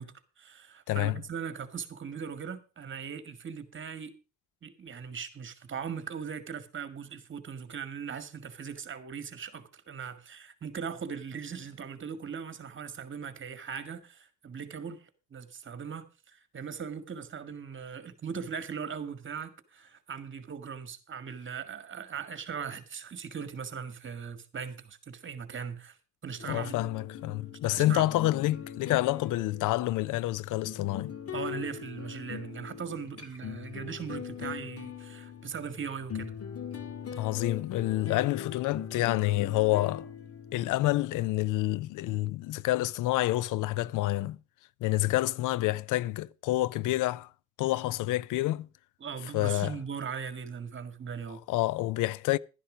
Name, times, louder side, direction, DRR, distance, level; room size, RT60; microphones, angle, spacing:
voice 1, 0.0-4.1 4.6-15.0 15.3-26.0 26.2-26.7 27.7-28.1 31.3-36.3 49.0-51.4, right 6 dB, 40° right, 1.9 m, -39 dB
voice 2, 0.9-1.2 26.4-31.1 37.1-40.1 40.5-44.4 44.8-47.3 47.6-48.7 49.3-49.7 51.5-52.4, left 16 dB, 85° left, 0.5 m, -28 dB
sound 1, 26.4-41.0, left 8 dB, 50° left, 2.0 m, -41 dB
12.0 x 10.0 x 5.1 m
cardioid pair, 90°, 30 cm